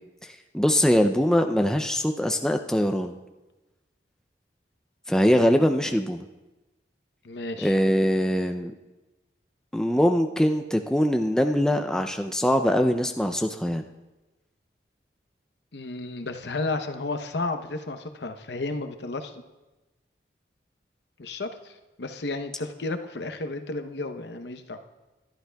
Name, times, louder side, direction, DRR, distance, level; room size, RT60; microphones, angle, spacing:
voice 1, 0.2-3.1 5.1-6.2 7.6-8.7 9.7-13.8, equal, 5° left, 5 dB, 0.4 m, -22 dB
voice 2, 7.2-7.7 15.7-19.3 21.2-24.8, left 2 dB, 75° left, 7 dB, 0.8 m, -32 dB
21.0 x 12.0 x 2.3 m, 1.1 s
head